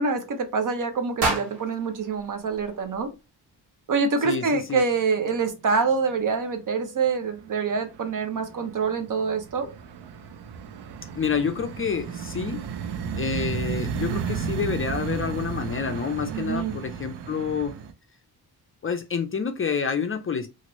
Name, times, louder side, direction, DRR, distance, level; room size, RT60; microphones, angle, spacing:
voice 1, 0.0-3.1 3.9-9.7 16.3-16.8, right 5 dB, 50° right, 0.7 m, -26 dB
sound 1, 1.2-3.3, right 3 dB, 70° right, 1.0 m, -31 dB
voice 2, 4.2-4.8 11.1-12.6 13.2-17.8 18.8-20.5, left 6 dB, 35° left, 0.4 m, -28 dB
sound 2, 5.0-5.4 5.7-6.4 6.8-17.9, right 7 dB, 85° right, 0.6 m, -34 dB
2.9 x 2.5 x 2.9 m
wide cardioid pair, 110°, 40 cm